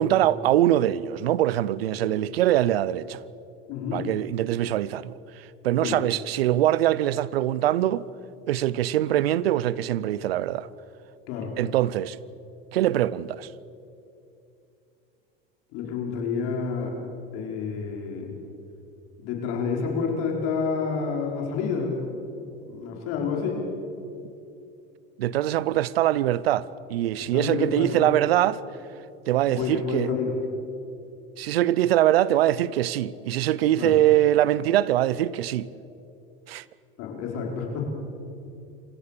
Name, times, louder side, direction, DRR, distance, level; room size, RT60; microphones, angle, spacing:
voice 1, 0.0-3.2 3.9-8.1 8.5-10.7 11.6-12.2 12.7-13.5 25.2-28.6 29.3-30.1 31.4-35.7 36.5-36.6, right 13 dB, 90° right, 0.7 m, -23 dB
voice 2, 3.7-4.1 5.8-6.0 11.3-11.5 15.7-17.0 17.3-18.3 19.2-22.0 22.7-23.7 27.2-28.1 29.5-30.4 33.8-34.0 37.0-37.8, left 5 dB, 60° left, 5.2 m, -29 dB
27.0 x 16.0 x 6.9 m
hypercardioid pair, 100°, 29 cm